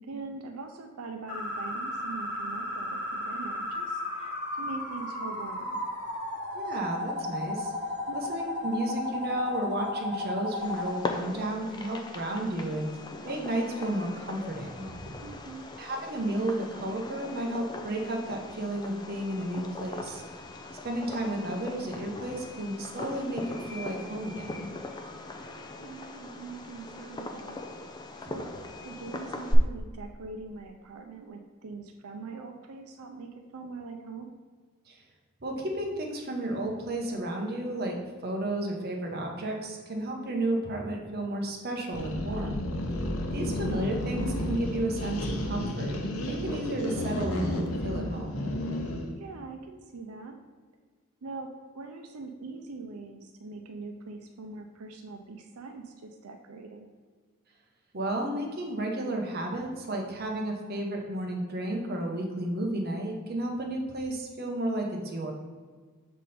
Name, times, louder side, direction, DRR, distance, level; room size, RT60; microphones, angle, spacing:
voice 1, 0.1-5.8 8.1-8.4 15.2-15.7 25.5-27.6 28.2-28.5 28.8-34.3 43.2-43.6 49.2-50.4 51.2-51.5 51.7-56.9, right 3 dB, 90° right, 4 dB, 0.5 m, -42 dB
sound 1, 1.3-10.9, left 2 dB, 55° left, 1.4 m, -34 dB
voice 2, 6.5-7.7 8.1-12.9 13.2-14.9 15.8-20.2 20.8-24.7 34.9-35.0 35.4-42.6 43.3-48.5 57.9-65.3, right 1 dB, 45° right, 1 dB, 0.9 m, -32 dB
Fireworks, 10.5-29.5, left 2 dB, 20° left, 0.4 m, -40 dB
sound 2, 41.9-49.1, left 1 dB, 80° left, 0.8 m, -32 dB
6.4 x 3.7 x 4.2 m, 1.5 s
head